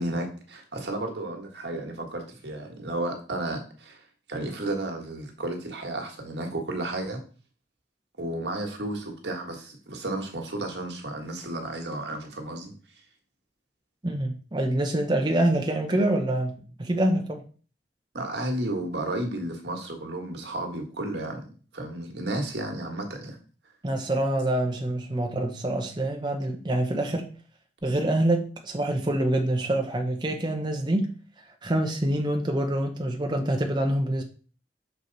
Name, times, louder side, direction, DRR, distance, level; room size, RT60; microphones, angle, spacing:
voice 1, 0.0-4.0 4.3-7.2 8.2-12.7 18.1-23.4, right 1 dB, 75° right, 1.6 m, -33 dB
voice 2, 14.0-17.4 23.8-27.3 27.8-31.1 31.6-34.2, right 1 dB, 25° right, 0.9 m, -26 dB
6.7 x 4.7 x 4.0 m
head